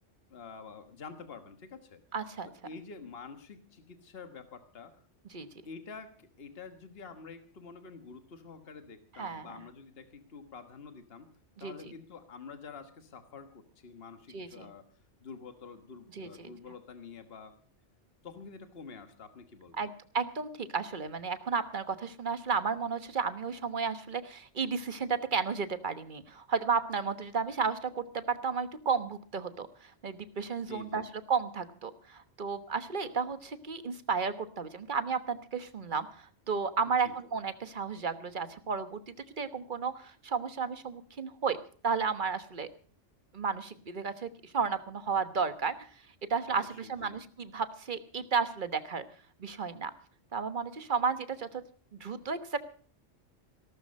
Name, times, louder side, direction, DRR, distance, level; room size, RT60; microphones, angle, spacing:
voice 1, 0.3-2.0 2.6-5.0 5.6-11.3 11.6-14.8 15.2-17.6 18.2-19.8 30.7-31.0 36.8-37.1 46.4-47.2, left 5 dB, 55° left, 8 dB, 1.6 m, -48 dB
voice 2, 2.1-2.5 5.3-5.5 9.2-9.5 11.6-11.7 14.3-14.7 16.2-16.5 19.8-39.0 39.4-41.6 41.8-42.7 43.3-45.7 46.3-49.0 49.4-49.9 50.3-51.6 52.0-52.6, right 5 dB, 45° right, 11 dB, 1.3 m, -33 dB
17.5 x 12.5 x 5.3 m, 0.43 s
omnidirectional pair, 1.2 m